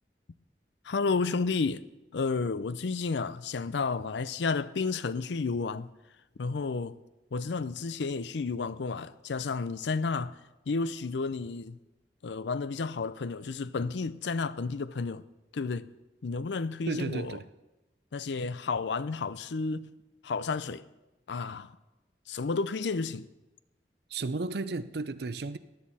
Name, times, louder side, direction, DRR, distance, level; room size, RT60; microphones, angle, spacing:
voice 1, 0.8-1.8 2.1-5.9 6.4-7.0 7.3-10.4 10.7-11.8 12.2-15.2 15.5-15.9 16.2-17.4 18.1-19.9 20.2-20.8 21.3-21.8 22.3-23.3, left 4 dB, 80° left, 0.5 m, -31 dB
voice 2, 16.9-17.5 24.1-25.6, right 3 dB, 65° right, 0.6 m, -33 dB
16.0 x 10.5 x 4.2 m
head